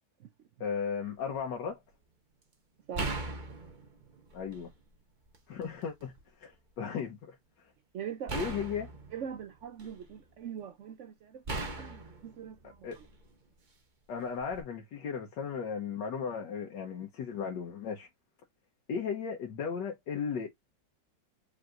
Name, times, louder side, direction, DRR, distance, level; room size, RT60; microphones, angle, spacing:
voice 1, 0.6-1.8 4.3-4.7 5.5-6.1 6.4-7.7 8.3-8.9 12.8-13.0 14.1-18.1 18.9-20.5, left 6 dB, 75° left, 1.5 m, -36 dB
sound 1, 1.1-1.4 2.9-4.8 5.3-6.2 8.3-10.2 11.5-13.3 14.4-14.6, right 2 dB, 35° right, 0.8 m, -39 dB
voice 2, 7.9-8.4 9.1-12.9, right 8 dB, 75° right, 0.6 m, -42 dB
5.3 x 3.4 x 2.5 m
omnidirectional pair, 1.9 m